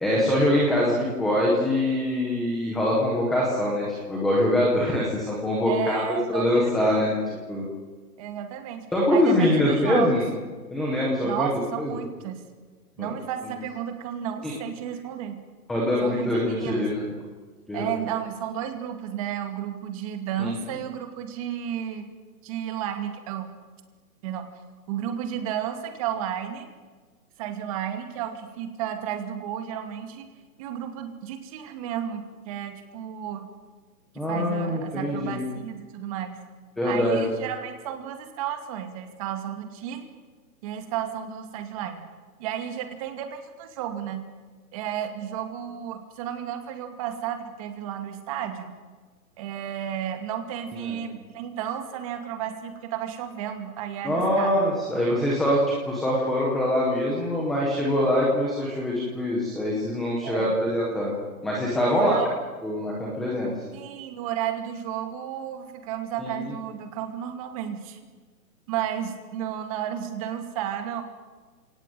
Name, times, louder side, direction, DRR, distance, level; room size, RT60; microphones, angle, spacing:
voice 1, 0.0-6.0 6.3-7.2 7.5-7.6 8.9-10.2 10.7-11.5 11.8-11.9 13.0-13.1 14.4-14.5 15.7-17.1 17.7-17.9 20.4-20.5 34.2-35.4 36.8-37.3 50.8-51.0 54.0-61.1 61.4-62.2 62.6-63.5 66.2-66.3, left 1 dB, ahead, -4 dB, 0.7 m, -24 dB
voice 2, 5.6-7.0 8.2-10.2 11.2-12.4 13.0-15.4 16.0-16.9 17.7-22.1 22.4-23.5 24.2-24.5 24.9-26.7 27.4-30.3 30.6-33.5 34.3-36.4 36.8-40.0 40.6-42.0 42.4-44.3 44.7-48.7 49.4-54.6 60.2-60.6 61.9-62.4 63.7-68.0 68.7-71.0, right 10 dB, 25° right, 7 dB, 2.4 m, -32 dB
29.0 x 18.0 x 9.1 m, 1.4 s
hypercardioid pair, 165°, 45 cm